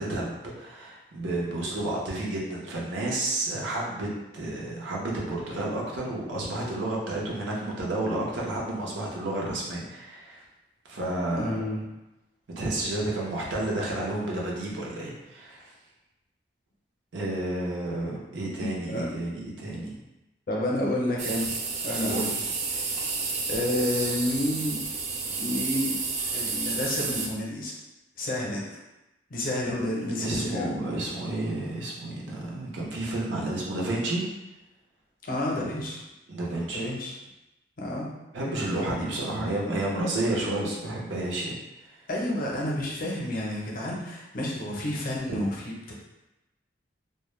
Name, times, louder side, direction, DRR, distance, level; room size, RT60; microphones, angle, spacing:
voice 1, 0.0-4.1 4.3-10.4 10.9-11.7 12.6-15.7 17.1-19.9 22.0-22.2 30.2-34.2 36.3-36.8 38.3-41.5 45.3-45.4, right 1 dB, 90° right, -3 dB, 0.6 m, -31 dB
voice 2, 11.4-11.8 18.9-19.2 20.5-21.5 21.8-22.4 22.7-22.9 23.5-24.8 25.4-25.9 26.3-27.7 28.2-28.8 29.3-30.7 35.2-36.0 36.7-37.1 37.8-38.1 42.1-45.6 45.9-46.0, left 1 dB, 50° left, -3 dB, 0.6 m, -30 dB
sound 1, 21.2-27.3, right 4 dB, 40° right, 0.3 m, -31 dB
2.1 x 2.0 x 3.0 m, 0.97 s
head